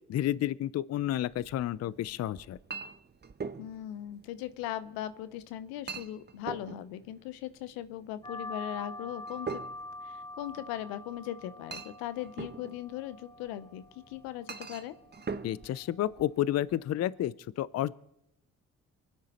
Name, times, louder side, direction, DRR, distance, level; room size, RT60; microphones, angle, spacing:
voice 1, 0.1-2.6 15.4-18.0, left 12 dB, 45° left, 21 dB, 0.5 m, -31 dB
Chink clink, 1.2-16.8, right 5 dB, 30° right, 1.0 m, -45 dB
voice 2, 3.6-9.6 10.0-14.9, left 12 dB, 85° left, 15 dB, 0.7 m, -39 dB
sound 1, 8.2-17.3, left 2 dB, 15° left, 3.3 m, -46 dB
24.0 x 9.6 x 4.2 m, 0.81 s
hypercardioid pair, 55°, 35 cm